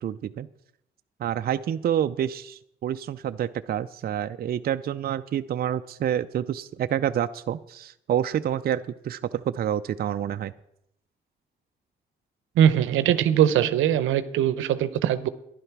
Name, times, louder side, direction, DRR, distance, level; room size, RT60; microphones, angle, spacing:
voice 1, 0.0-0.5 1.2-10.5, right 10 dB, 50° right, 0.5 m, -28 dB
voice 2, 12.6-15.3, right 10 dB, 85° right, 0.8 m, -21 dB
11.0 x 11.0 x 5.9 m
cardioid pair, 90°, 20 cm